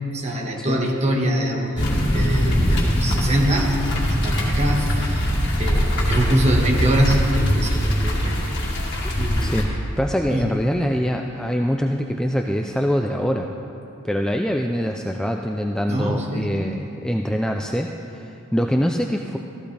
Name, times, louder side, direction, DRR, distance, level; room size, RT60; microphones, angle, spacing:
voice 1, 0.1-1.9 2.1-5.3 5.6-8.4 9.2-9.6 10.3-10.5 15.9-16.5, equal, 35° right, 0 dB, 1.4 m, -24 dB
sound 1, 1.8-9.6, equal, 55° left, 2.2 m, -21 dB
voice 2, 9.4-9.7 10.0-13.5 14.0-18.3 18.5-19.4, equal, 5° left, 2 dB, 0.3 m, -24 dB
14.5 x 14.5 x 3.4 m, 2.9 s
head